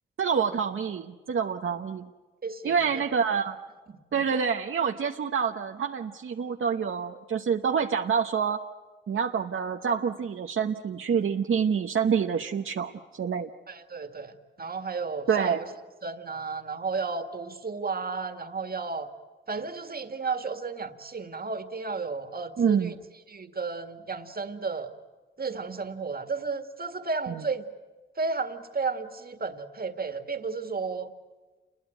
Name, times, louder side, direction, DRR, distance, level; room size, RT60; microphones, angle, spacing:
voice 1, 0.2-2.1 2.6-3.6 4.1-8.6 9.1-13.5 15.3-15.6 22.6-22.9 27.3-27.4, right 6 dB, 75° right, 4 dB, 1.0 m, -27 dB
voice 2, 2.4-2.8 3.9-4.2 13.7-15.6 16.0-19.1 19.5-23.0 23.3-24.9 25.4-27.7 28.2-31.1, right 4 dB, 45° right, 8 dB, 2.0 m, -33 dB
28.5 x 21.5 x 9.2 m, 1.3 s
wide cardioid pair, 85°, 21 cm